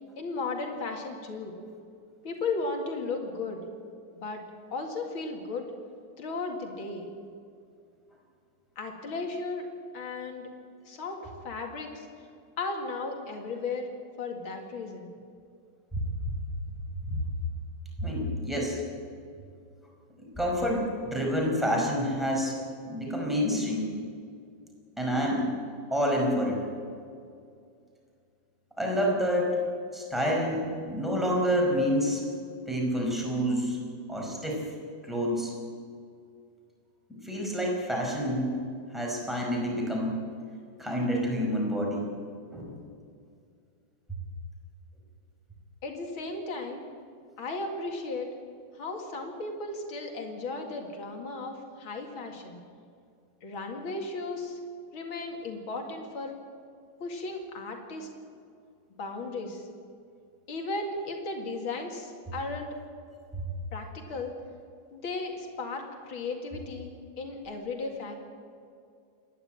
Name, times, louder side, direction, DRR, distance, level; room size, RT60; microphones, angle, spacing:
voice 1, 0.2-1.5 2.2-3.7 4.2-4.4 4.7-5.7 6.2-7.1 8.8-10.5 10.8-12.1 12.6-13.9 14.2-15.1 45.8-46.8 47.4-48.3 48.7-52.6 53.4-54.6 54.9-56.3 57.0-58.1 59.0-59.7 60.5-62.7 63.7-64.3 64.9-66.9 67.2-68.1, left 3 dB, 85° left, 2 dB, 3.0 m, -35 dB
voice 2, 18.0-18.8 20.3-22.6 22.9-23.9 25.0-25.4 25.9-26.6 28.8-29.6 29.9-32.2 32.7-33.8 34.1-34.6 35.0-35.5 37.2-38.6 38.9-40.2 40.8-42.0 42.5-42.9 63.3-63.4, equal, ahead, -1 dB, 4.9 m, -28 dB
28.0 x 11.0 x 8.9 m, 2.3 s
omnidirectional pair, 2.2 m